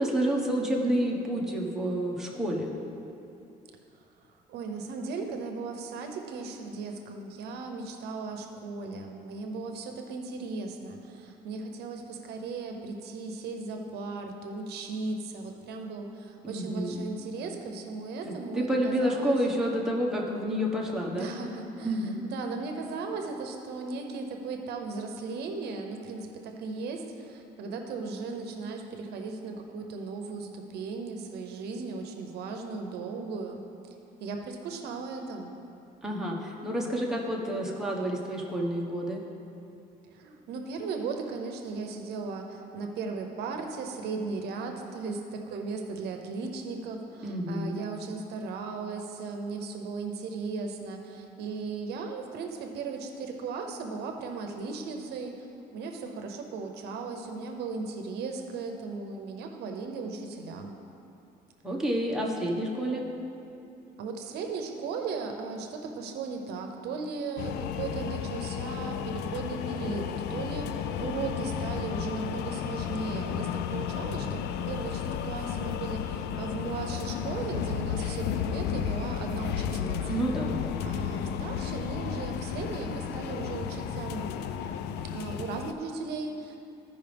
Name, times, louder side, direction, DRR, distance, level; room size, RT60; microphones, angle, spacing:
voice 1, 0.0-2.7 16.4-17.1 18.2-21.3 21.8-22.2 36.0-39.2 47.2-47.8 61.6-63.0 80.1-80.8, equal, 5° right, -3 dB, 1.3 m, -29 dB
voice 2, 4.5-19.4 21.1-33.6 34.2-35.5 40.1-55.3 55.7-60.7 63.7-80.2 80.8-84.3 85.1-86.6, right 4 dB, 75° right, 4 dB, 0.8 m, -37 dB
sound 1, 67.4-85.7, left 8 dB, 80° left, 0.4 m, -33 dB
15.0 x 5.3 x 3.5 m, 2.7 s
cardioid pair, 110°, 17 cm